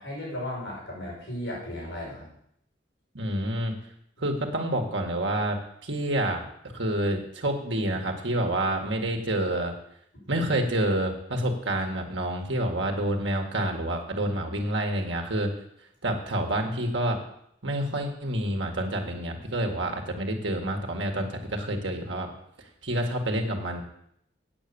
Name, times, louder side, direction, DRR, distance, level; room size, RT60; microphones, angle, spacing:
voice 1, 0.0-2.3, left 1 dB, 70° left, -4 dB, 5.9 m, -35 dB
voice 2, 3.1-3.7 4.2-5.6 5.8-6.4 6.7-9.7 10.3-15.5 16.0-17.2 17.6-22.3 22.6-23.8, right 1 dB, 75° right, 2 dB, 1.9 m, -28 dB
8.6 x 8.4 x 7.0 m, 0.72 s
head